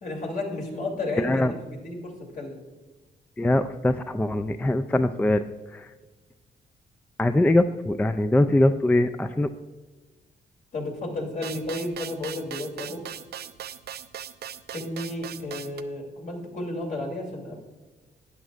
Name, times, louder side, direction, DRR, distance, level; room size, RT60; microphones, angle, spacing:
voice 1, 0.0-1.4 1.7-2.5 10.7-13.0 14.7-17.6, left 2 dB, 55° left, 0 dB, 2.7 m, -32 dB
voice 2, 1.2-1.5 3.4-5.4 5.7-5.9 7.2-9.5, left 1 dB, 10° left, 9 dB, 0.3 m, -22 dB
sound 1, 11.4-15.8, right 10 dB, 75° right, 0.5 m, -39 dB
12.5 x 9.3 x 2.4 m, 1.3 s
cardioid pair, 115°, 17 cm